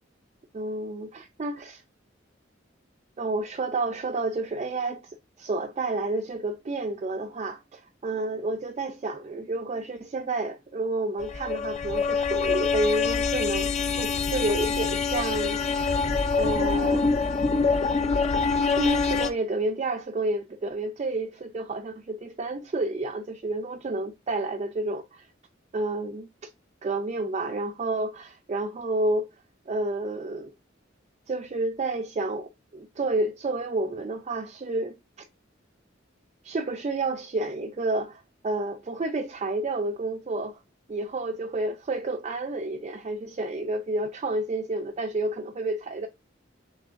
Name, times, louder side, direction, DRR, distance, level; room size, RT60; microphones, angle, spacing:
voice 1, 0.5-1.8 3.2-15.9 16.4-17.1 18.8-25.3 25.7-26.5 26.8-29.3 29.7-30.5 31.3-35.0 36.4-40.6 40.9-46.1, right 2 dB, 35° right, 0.4 m, -30 dB
sound 1, 11.2-19.3, left 4 dB, 35° left, 0.4 m, -25 dB
6.1 x 3.1 x 2.5 m
head